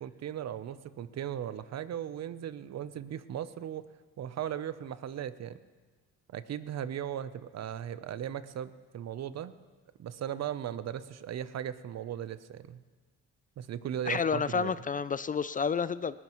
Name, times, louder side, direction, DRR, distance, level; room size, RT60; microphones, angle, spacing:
voice 1, 0.0-3.8 4.2-5.6 6.3-9.5 10.0-12.8 13.6-14.8, right 10 dB, 60° right, 14 dB, 0.7 m, -37 dB
voice 2, 14.1-16.2, left 5 dB, 30° left, 15 dB, 0.4 m, -30 dB
19.5 x 18.0 x 3.1 m, 1.4 s
cardioid pair, 90°, 30 cm